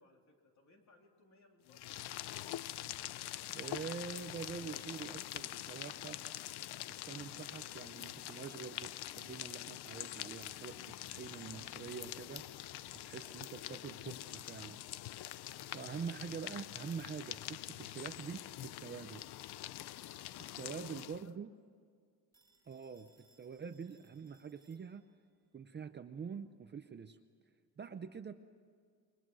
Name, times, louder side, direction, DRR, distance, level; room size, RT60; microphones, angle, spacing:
voice 1, 0.0-2.0, left 2 dB, 45° left, 2 dB, 3.5 m, -67 dB
sound 1, 1.7-21.3, left 14 dB, 70° left, 0.6 m, -45 dB
voice 2, 3.5-6.2 6.8-12.5 13.0-14.8 15.7-19.2 20.6-21.5 22.7-23.1 23.4-25.0 25.5-27.2 27.8-28.3, right 6 dB, 25° right, 8 dB, 0.6 m, -45 dB
Telephone, 22.3-25.3, right 3 dB, 10° left, 4.8 m, -71 dB
28.5 x 22.5 x 6.3 m, 2.1 s
cardioid pair, 180°, 41 cm